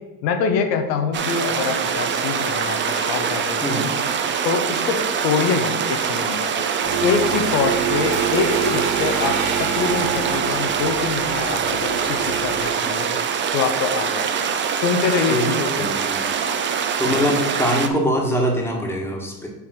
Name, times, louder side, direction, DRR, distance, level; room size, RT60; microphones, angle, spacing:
voice 1, 0.2-3.9 4.4-6.7 7.0-13.2 13.5-14.3 14.7-15.9 17.1-17.4, left 5 dB, 85° left, 6 dB, 1.0 m, -25 dB
sound 1, 1.1-17.9, right 7 dB, 25° right, 0.5 m, -24 dB
sound 2, 6.8-12.7, right 7 dB, 75° right, 2.1 m, -27 dB
voice 2, 15.7-16.2 17.0-19.5, equal, 5° left, 0 dB, 1.4 m, -23 dB
6.8 x 3.4 x 6.1 m, 1.2 s
supercardioid pair, 110°, 48 cm